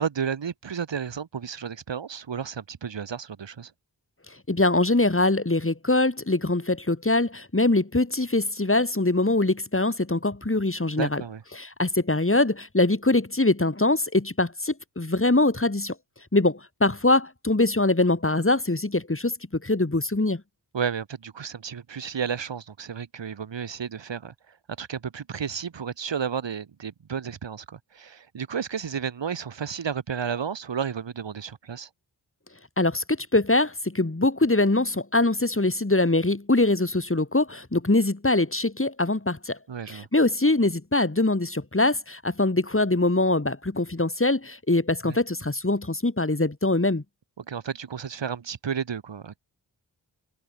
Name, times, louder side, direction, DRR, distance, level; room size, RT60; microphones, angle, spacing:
voice 1, 0.0-3.7 11.0-11.4 20.7-24.3 24.8-31.9 39.7-40.1 45.0-45.2 47.4-49.4, right 7 dB, 85° right, 3.0 m, -32 dB
voice 2, 4.5-11.2 11.6-16.0 16.3-20.4 32.8-39.6 39.9-47.0, left 2 dB, 30° left, 7.1 m, -23 dB
cardioid pair, 40°, 43 cm